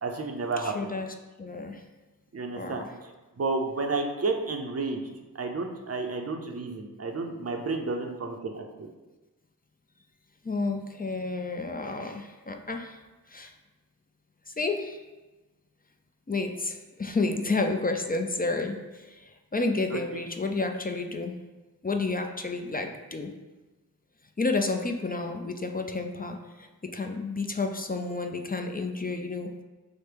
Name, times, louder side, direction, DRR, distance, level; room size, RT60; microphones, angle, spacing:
voice 1, 0.0-0.9 2.3-3.1 3.4-5.0 5.3-8.9 19.9-20.0, right 3 dB, 45° right, 3 dB, 0.5 m, -31 dB
voice 2, 0.6-1.8 2.5-2.9 10.4-13.0 13.3-13.5 14.5-15.0 16.3-21.4 21.8-23.3 24.4-29.6, left 3 dB, 25° left, 4 dB, 0.4 m, -31 dB
5.8 x 2.1 x 3.3 m, 1.1 s
wide cardioid pair, 50°, 35 cm